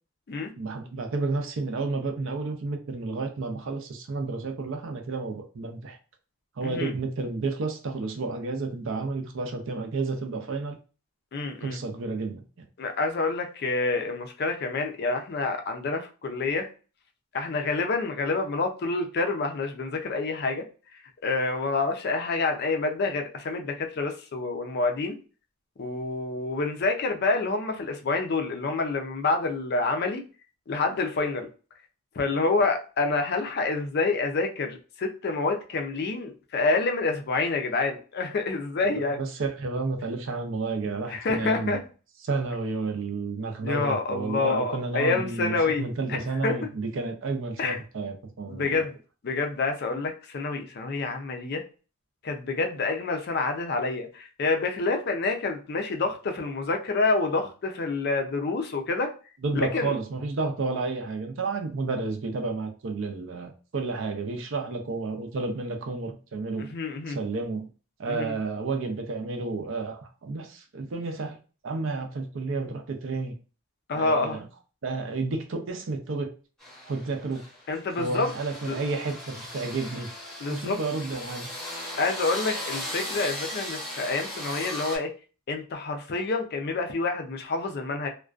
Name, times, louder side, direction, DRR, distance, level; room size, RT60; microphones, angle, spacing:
voice 1, 0.6-6.0 6.6-10.8 11.6-12.4 39.1-41.8 42.2-48.9 59.4-66.7 67.1-67.7 68.0-71.4 71.6-73.4 73.9-74.4 74.8-76.3 76.9-77.4 78.0-81.5, right 3 dB, 60° right, 5 dB, 0.5 m, -31 dB
voice 2, 11.3-11.8 12.8-16.7 17.3-20.6 21.2-25.2 25.8-30.2 30.7-31.5 32.2-39.2 41.1-41.8 43.6-46.6 47.6-47.8 48.5-48.9 49.2-51.6 52.2-59.1 59.5-59.9 66.7-67.2 68.1-68.3 73.9-74.4 77.7-78.3 78.7-78.8 80.4-80.8 82.0-85.1 85.5-88.1, left 3 dB, 45° left, 4 dB, 0.4 m, -27 dB
sound 1, 76.6-85.0, left 1 dB, 5° left, 0.8 m, -37 dB
2.4 x 2.2 x 2.3 m, 0.36 s
head